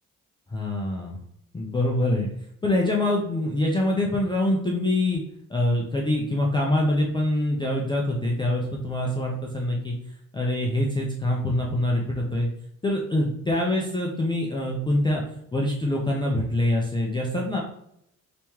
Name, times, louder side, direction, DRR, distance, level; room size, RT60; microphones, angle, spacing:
voice 1, 0.5-1.2 1.5-2.3 2.6-5.2 5.5-9.9 10.3-12.5 12.8-15.2 15.5-17.6, left 1 dB, 15° left, -3 dB, 0.3 m, -25 dB
3.0 x 2.9 x 3.4 m, 0.73 s
cardioid pair, 165°, 34 cm